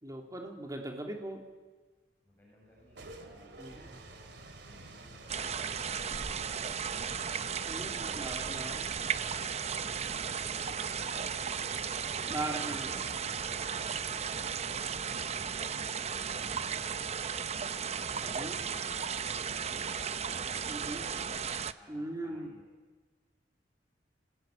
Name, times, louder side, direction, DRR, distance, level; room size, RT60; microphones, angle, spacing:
voice 1, 0.0-1.4 3.6-4.0 7.7-8.9 12.2-13.2 18.2-18.6 20.7-21.1 21.9-22.5, right 1 dB, 20° right, 2 dB, 3.4 m, -40 dB
voice 2, 2.2-4.4 4.6-7.3 9.9-11.3 14.7-17.2 17.8-19.9 20.4-21.0 21.8-22.7, equal, 10° left, -5 dB, 7.5 m, -59 dB
sound 1, 2.7-19.4, right 2 dB, 70° right, 2.7 m, -51 dB
sound 2, 5.3-21.7, right 7 dB, 40° right, 0.7 m, -35 dB
27.0 x 18.5 x 9.4 m, 1.3 s
head